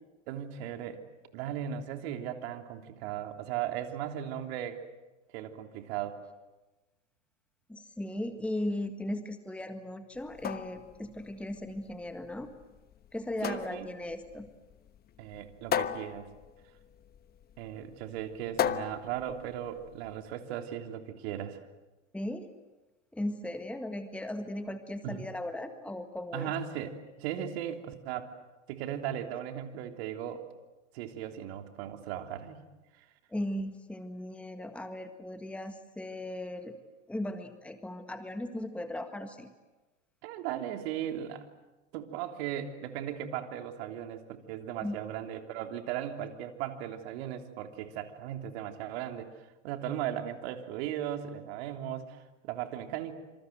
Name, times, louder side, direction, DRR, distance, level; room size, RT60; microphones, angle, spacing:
voice 1, 0.3-1.0 1.3-4.8 5.3-6.2 13.4-13.9 15.2-16.3 17.6-21.6 25.0-25.2 26.3-28.3 28.7-30.5 30.9-32.6 32.9-33.1 40.2-41.4 41.9-53.1, right 10 dB, 55° right, 5 dB, 3.4 m, -37 dB
voice 2, 7.7-12.5 13.1-14.5 22.1-22.5 23.1-26.5 33.3-36.8 37.1-39.5 44.8-45.0, left 1 dB, 5° left, 7 dB, 1.7 m, -37 dB
sound 1, 10.2-20.2, left 9 dB, 25° left, 1.1 m, -37 dB
27.5 x 27.0 x 7.8 m, 1.1 s
hypercardioid pair, 105°, 36 cm